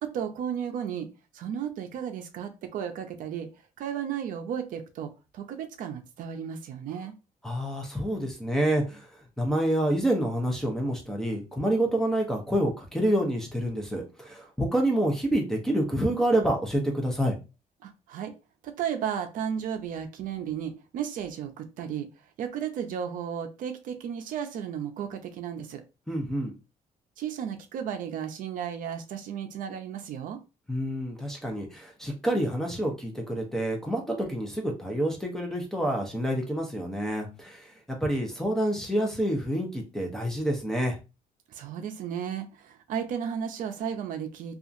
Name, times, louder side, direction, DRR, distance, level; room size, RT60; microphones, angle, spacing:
voice 1, 0.0-3.5 3.8-7.1 17.8-18.3 18.6-22.1 22.4-25.8 27.2-30.4 41.5-44.6, right 8 dB, 70° right, 7 dB, 0.5 m, -34 dB
voice 2, 7.4-9.1 9.4-17.3 26.1-26.5 30.7-41.0, right 1 dB, 5° left, 1 dB, 0.7 m, -28 dB
2.7 x 2.4 x 2.5 m, 0.28 s
cardioid pair, 145°, 14 cm